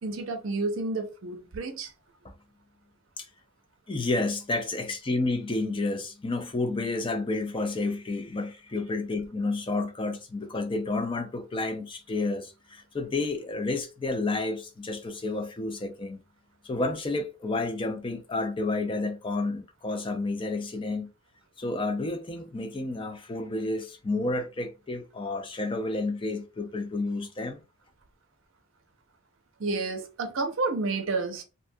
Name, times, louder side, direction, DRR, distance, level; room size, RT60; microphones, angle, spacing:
voice 1, 0.0-1.9 29.6-31.4, right 3 dB, 65° right, 0.5 m, -30 dB
voice 2, 3.9-16.2 16.6-21.1 21.6-27.6, left 2 dB, 25° left, 0.4 m, -30 dB
2.6 x 2.3 x 2.6 m
head